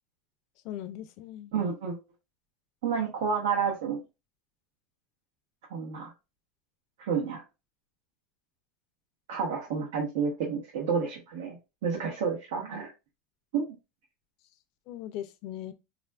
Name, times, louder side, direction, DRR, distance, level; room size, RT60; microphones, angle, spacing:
voice 1, 0.6-1.5 14.9-15.7, left 12 dB, 50° left, 0.3 m, -39 dB
voice 2, 1.5-2.0 2.8-4.0 5.7-6.1 7.0-7.4 9.3-11.6 11.8-12.9 13.5-13.7, right 6 dB, 85° right, 0.8 m, -30 dB
3.6 x 2.4 x 2.2 m
supercardioid pair, 165°, 0 cm